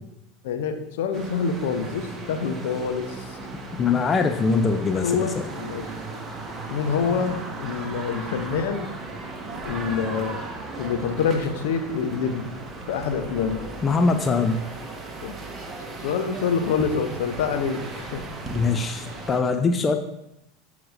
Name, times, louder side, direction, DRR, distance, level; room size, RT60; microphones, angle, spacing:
voice 1, 0.4-3.4 4.9-5.9 6.7-8.9 9.6-10.4 10.8-12.5 12.9-13.6 15.2-15.3 16.0-18.3, left 6 dB, 60° left, 7 dB, 0.8 m, -26 dB
sound 1, 1.1-19.4, right 2 dB, 20° right, 1.2 m, -36 dB
voice 2, 3.8-5.3 13.8-14.6 18.5-20.0, left 4 dB, 25° left, 7 dB, 0.5 m, -22 dB
13.5 x 5.0 x 2.6 m, 0.86 s
figure-of-eight pair, 80°, 0 cm